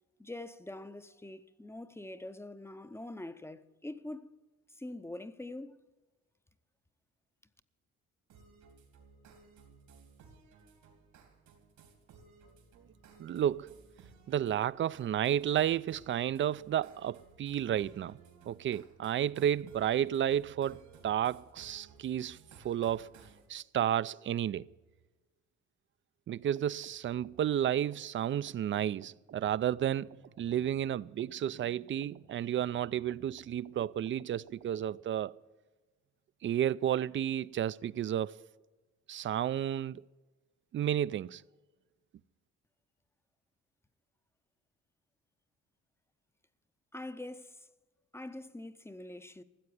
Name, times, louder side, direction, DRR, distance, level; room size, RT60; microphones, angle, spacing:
voice 1, 0.2-4.3 4.8-5.8 46.9-47.6 48.1-49.4, left 1 dB, 10° left, 0.6 m, -44 dB
sound 1, 8.3-23.5, right 5 dB, 85° right, 2.9 m, -58 dB
voice 2, 13.2-13.7 14.3-18.2 18.5-22.4 22.6-23.1 23.5-24.7 26.3-35.4 36.4-38.4 39.1-40.0 40.7-41.4, right 10 dB, 40° right, 0.4 m, -32 dB
sound 2, 26.3-35.0, right 8 dB, 60° right, 0.9 m, -58 dB
14.5 x 7.6 x 9.5 m
cardioid pair, 90°, 30 cm